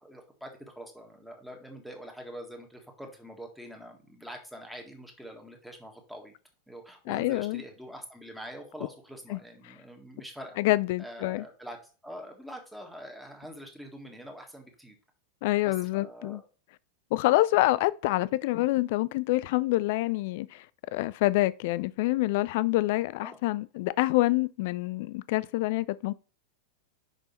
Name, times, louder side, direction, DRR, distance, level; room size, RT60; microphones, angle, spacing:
voice 1, 0.0-6.3 6.7-10.6 11.0-14.9 15.6-16.4 23.2-23.4, equal, ahead, 1.6 m, -45 dB
voice 2, 7.1-7.6 9.3-9.4 10.6-11.4 15.4-16.4 17.1-20.6 20.9-26.1, left 18 dB, 50° left, 0.3 m, -26 dB
6.0 x 5.3 x 4.3 m
figure-of-eight pair, 90°, 0 cm